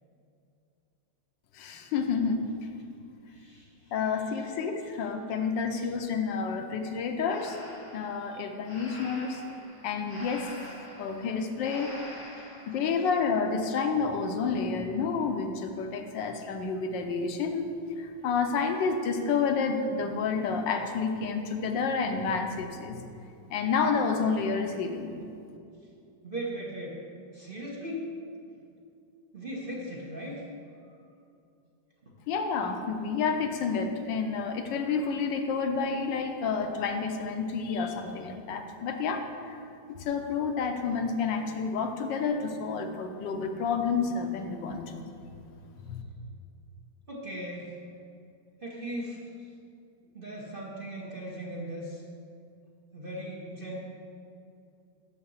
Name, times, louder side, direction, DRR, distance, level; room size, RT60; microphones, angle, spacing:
voice 1, 1.5-2.4 3.9-7.6 7.9-9.4 9.8-10.5 11.0-11.9 12.7-17.7 18.0-23.0 23.5-25.2 32.3-39.6 39.9-45.1 45.6-46.0, left 5 dB, 80° left, 5 dB, 1.4 m, -29 dB
voice 2, 3.3-3.9 5.8-5.9 12.4-12.5 26.2-27.0 27.3-28.1 29.3-30.4 32.0-32.1 47.1-47.7 48.6-49.2 50.1-52.0 52.9-53.8, right 1 dB, 35° right, -3 dB, 0.9 m, -38 dB
Breathing, 7.3-12.8, left 1 dB, 30° left, 1.7 m, -46 dB
6.8 x 6.6 x 7.1 m, 2.5 s
omnidirectional pair, 2.0 m